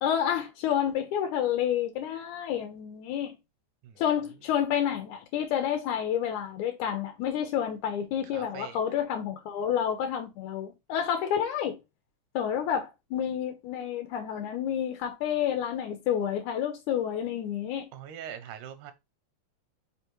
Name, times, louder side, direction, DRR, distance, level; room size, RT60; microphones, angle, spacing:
voice 1, 0.0-3.3 4.0-11.8 12.4-17.9, left 9 dB, 85° left, 2.1 m, -29 dB
voice 2, 8.3-8.8 17.9-18.9, right 9 dB, 85° right, 2.1 m, -42 dB
4.9 x 3.5 x 3.0 m
omnidirectional pair, 3.4 m